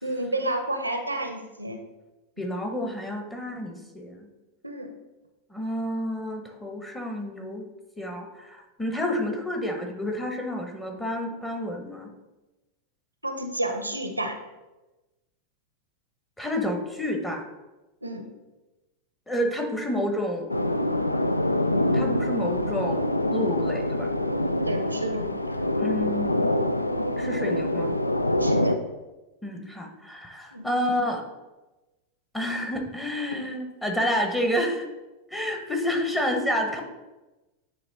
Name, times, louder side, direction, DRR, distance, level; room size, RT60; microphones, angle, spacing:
voice 1, 0.0-1.8 4.6-4.9 13.2-14.4 18.0-18.3 24.7-25.3 28.4-28.8 30.5-30.7, right 1 dB, 85° right, 5 dB, 0.7 m, -30 dB
voice 2, 2.4-4.3 5.5-7.7 8.0-12.1 16.4-17.5 19.3-20.5 21.9-24.1 25.8-26.5 27.2-27.9 29.4-31.2 32.3-34.9 35.3-36.8, left 1 dB, 5° left, 2 dB, 1.0 m, -29 dB
sound 1, 20.5-28.8, left 1 dB, 85° left, 0.3 m, -25 dB
9.4 x 3.2 x 4.0 m, 1.1 s
figure-of-eight pair, 90°, 0 cm